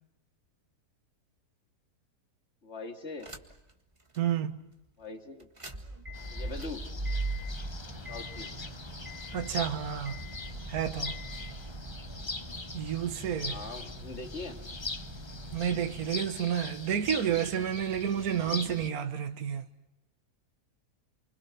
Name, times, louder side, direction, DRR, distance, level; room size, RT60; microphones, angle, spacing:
voice 1, 2.6-3.3 5.0-5.5 6.3-6.9 8.1-8.5 13.4-14.6, left 3 dB, 45° left, 2.5 m, -41 dB
sound 1, 3.2-3.7 4.1-4.2 5.4-16.1, right 2 dB, 20° right, 1.7 m, -40 dB
voice 2, 4.2-4.6 9.3-10.3 10.7-11.2 12.7-13.6 15.5-19.7, right 9 dB, 65° right, 1.7 m, -30 dB
sound 2, 6.1-18.9, left 3 dB, 25° left, 0.7 m, -42 dB
28.5 x 25.0 x 6.0 m
omnidirectional pair, 1.7 m